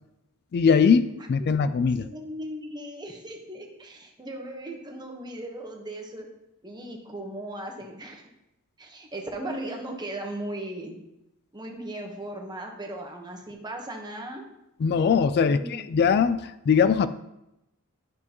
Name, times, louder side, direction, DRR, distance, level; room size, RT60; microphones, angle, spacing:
voice 1, 0.5-2.1 14.8-15.6 15.9-17.1, left 6 dB, 50° left, 14 dB, 0.3 m, -21 dB
voice 2, 1.2-1.7 2.0-6.2 6.6-8.3 8.8-10.9 11.5-14.4 15.4-15.9, right 1 dB, 20° right, 2 dB, 1.2 m, -37 dB
12.0 x 6.0 x 3.0 m, 0.88 s
head